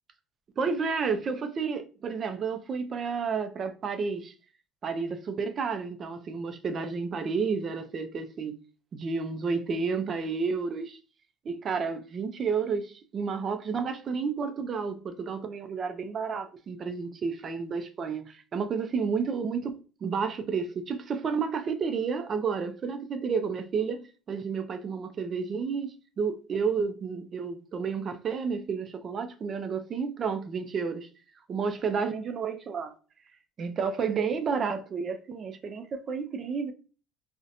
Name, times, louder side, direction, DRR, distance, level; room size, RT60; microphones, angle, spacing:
voice 1, 0.6-4.3 4.8-8.6 8.9-11.0 11.5-31.1 31.5-32.9 33.6-36.7, right 5 dB, 45° right, 0.3 m, -31 dB
2.7 x 2.1 x 2.5 m
supercardioid pair, 100°, 0 cm